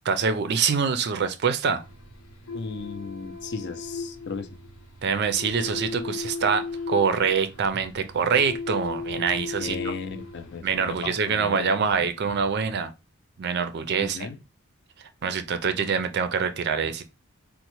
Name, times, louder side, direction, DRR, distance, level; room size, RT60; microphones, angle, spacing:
voice 1, 0.1-1.8 5.0-9.8 10.6-12.9 13.4-14.3 15.2-17.0, right 6 dB, 50° right, 0.4 m, -25 dB
sound 1, 1.8-11.1, left 4 dB, 90° left, 0.9 m, -37 dB
voice 2, 2.5-4.5 9.6-11.8 14.0-14.4, left 5 dB, 55° left, 0.4 m, -36 dB
4.1 x 2.1 x 2.9 m
head